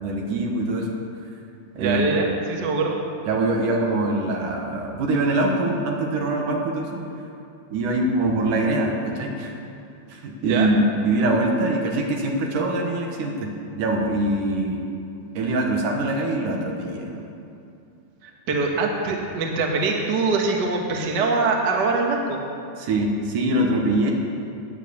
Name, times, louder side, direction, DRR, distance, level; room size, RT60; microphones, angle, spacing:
voice 1, 0.0-0.9 1.8-2.1 3.3-7.0 7.7-9.6 10.1-13.5 13.8-14.8 15.3-17.3 22.8-24.1, right 2 dB, 80° right, 1 dB, 3.1 m, -23 dB
voice 2, 1.8-3.0 10.4-10.7 18.2-22.4, right 3 dB, 40° right, 0 dB, 1.7 m, -23 dB
19.5 x 7.6 x 7.1 m, 2.6 s
omnidirectional pair, 3.6 m